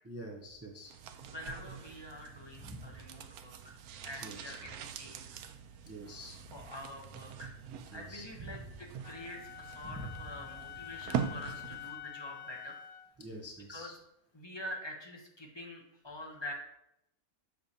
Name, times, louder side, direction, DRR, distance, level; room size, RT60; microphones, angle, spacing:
voice 1, 0.1-0.9 2.6-3.0 4.2-4.6 5.9-6.4 7.9-8.7 9.8-10.5 13.2-14.0, right 1 dB, 25° right, 0 dB, 0.3 m, -46 dB
sound 1, 0.8-12.0 12.3-12.4, right 7 dB, 80° right, 1.1 m, -43 dB
voice 2, 1.2-3.8 4.0-5.4 6.5-7.5 7.9-12.8 13.7-13.9 14.3-16.5, left 1 dB, 20° left, -1 dB, 0.8 m, -46 dB
Wind instrument woodwind instrument, 9.0-13.1, left 11 dB, 85° left, 1.1 m, -47 dB
7.7 x 6.8 x 2.8 m, 0.81 s
omnidirectional pair, 1.6 m